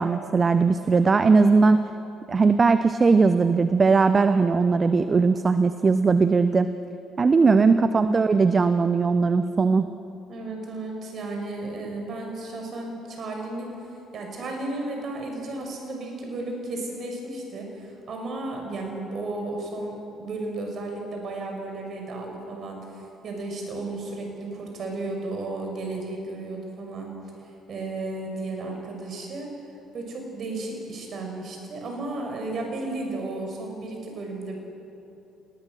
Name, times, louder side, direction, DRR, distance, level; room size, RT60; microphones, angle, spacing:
voice 1, 0.0-1.8 2.3-6.7 7.2-9.9, right 4 dB, 35° right, 11 dB, 0.8 m, -19 dB
voice 2, 10.3-13.7 14.1-27.1 27.7-29.5 29.9-34.6, right 2 dB, 50° right, 2 dB, 6.2 m, -33 dB
28.0 x 19.5 x 6.6 m, 2.9 s
hypercardioid pair, 55°, 0 cm